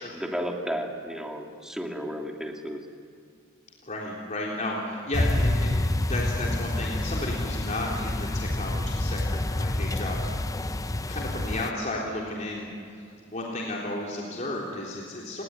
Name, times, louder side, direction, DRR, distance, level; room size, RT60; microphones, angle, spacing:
voice 1, 0.1-2.8, equal, 5° right, 1 dB, 2.4 m, -33 dB
voice 2, 3.8-10.5 10.7-13.0 13.3-15.4, left 1 dB, 40° left, -3 dB, 3.6 m, -33 dB
sound 1, 5.1-11.7, left 1 dB, 15° left, 0.6 m, -28 dB
29.0 x 19.5 x 9.6 m, 2.4 s
head